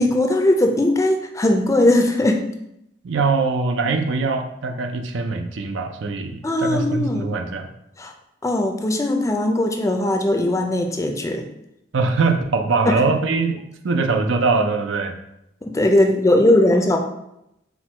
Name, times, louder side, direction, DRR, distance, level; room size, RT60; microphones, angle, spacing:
voice 1, 0.0-2.4 6.4-7.3 8.0-8.1 8.4-11.5 15.6-17.0, left 1 dB, 15° left, 3 dB, 0.4 m, -19 dB
voice 2, 3.0-7.7 11.9-15.1, right 4 dB, 90° right, 6 dB, 0.5 m, -22 dB
4.5 x 2.2 x 4.3 m, 0.82 s
head